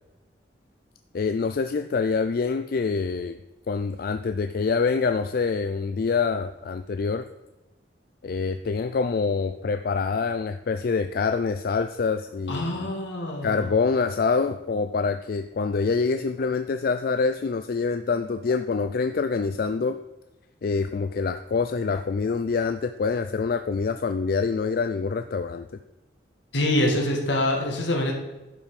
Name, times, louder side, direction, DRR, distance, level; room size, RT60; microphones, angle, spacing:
voice 1, 1.1-3.4 3.7-7.3 8.2-12.9 13.4-20.0 20.6-25.7, left 4 dB, 50° left, 9 dB, 0.4 m, -26 dB
voice 2, 12.5-13.7 26.5-28.1, left 1 dB, 75° left, 1 dB, 2.0 m, -25 dB
11.0 x 5.7 x 4.9 m, 1.1 s
head